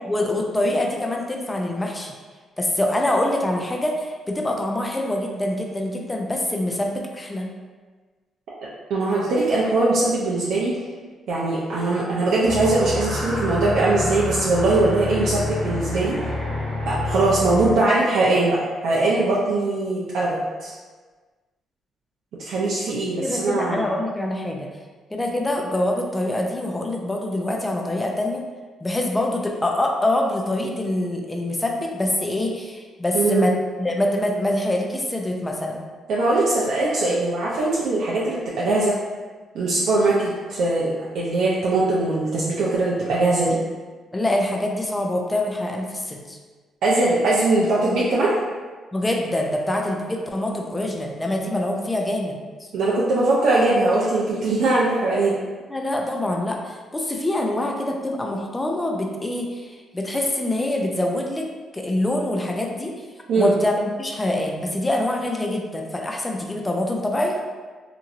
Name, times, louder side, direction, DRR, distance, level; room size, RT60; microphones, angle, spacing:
voice 1, 0.1-2.1 2.6-7.5 23.2-24.7 25.1-28.4 28.8-35.9 44.1-46.4 48.9-52.4 55.7-61.5 61.7-62.9 63.3-67.4, left 1 dB, 15° left, 1 dB, 0.4 m, -25 dB
voice 2, 8.9-10.7 11.3-16.2 16.8-20.7 22.4-23.8 33.1-33.5 36.1-39.0 39.5-43.6 46.8-48.3 52.7-55.4 63.3-63.5, right 2 dB, 75° right, -6 dB, 0.4 m, -21 dB
sound 1, 12.4-17.8, left 2 dB, 35° right, 0.9 m, -28 dB
2.9 x 2.6 x 2.5 m, 1.4 s
cardioid pair, 90°, 0 cm